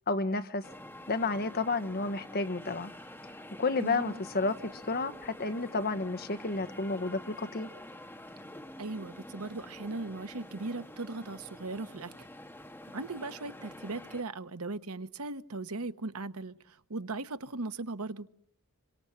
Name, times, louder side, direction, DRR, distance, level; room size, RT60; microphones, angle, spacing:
voice 1, 0.1-0.6 1.1-2.9 3.6-7.7, left 3 dB, 45° left, 1.2 m, -31 dB
sound 1, 0.6-14.2, left 1 dB, 10° left, 1.9 m, -48 dB
voice 2, 3.8-4.2 8.8-12.3 12.9-18.3, right 3 dB, 90° right, 1.1 m, -38 dB
27.0 x 24.0 x 7.4 m
head